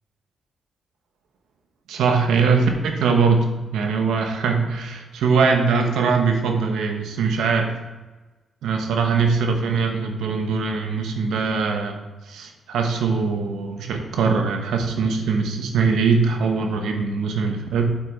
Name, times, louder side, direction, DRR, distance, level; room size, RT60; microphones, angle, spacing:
voice 1, 1.9-3.5 3.7-7.7 8.6-11.9 12.3-18.0, right 5 dB, 90° right, 4 dB, 1.2 m, -21 dB
8.8 x 5.9 x 4.2 m, 1.2 s
cardioid pair, 80°, 0 cm